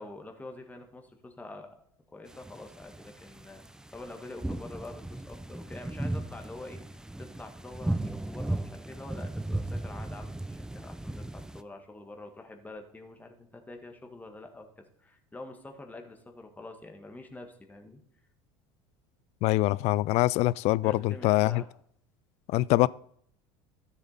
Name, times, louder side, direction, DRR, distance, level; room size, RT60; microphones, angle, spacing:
voice 1, 0.0-1.7 2.1-3.6 3.9-18.0 20.8-21.7, left 2 dB, 10° left, 1.7 m, -46 dB
sound 1, 2.3-11.6, right 1 dB, 5° right, 0.5 m, -36 dB
voice 2, 19.4-21.6 22.5-22.9, left 18 dB, 60° left, 0.4 m, -24 dB
13.0 x 7.2 x 4.1 m
hypercardioid pair, 90°, 13 cm